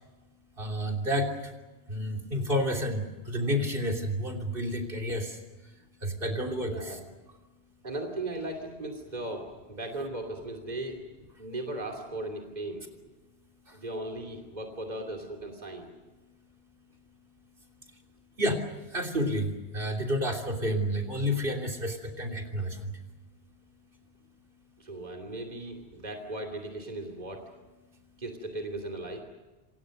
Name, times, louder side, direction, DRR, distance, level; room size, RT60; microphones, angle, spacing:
voice 1, 0.6-1.5 1.9-5.4 6.0-7.0 13.7-13.8 18.4-18.6 18.9-22.9, equal, 60° right, 2 dB, 3.5 m, -30 dB
voice 2, 6.6-7.0 7.8-11.0 11.4-12.9 13.7-15.9 24.8-27.4 28.2-29.2, right 2 dB, 40° right, 2 dB, 3.0 m, -37 dB
28.0 x 26.0 x 6.6 m, 1.2 s
omnidirectional pair, 1.1 m